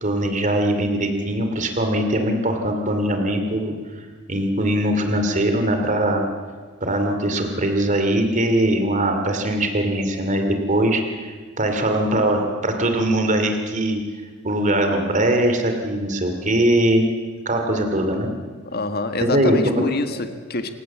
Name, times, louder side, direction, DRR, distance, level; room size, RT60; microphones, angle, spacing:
voice 1, 0.0-3.7 4.3-6.2 6.8-14.0 14.4-17.0 17.4-18.3 19.2-19.8, right 1 dB, 35° right, 5 dB, 2.7 m, -21 dB
voice 2, 18.7-20.7, left 2 dB, 45° left, 8 dB, 1.7 m, -26 dB
27.5 x 17.0 x 7.4 m, 1.5 s
head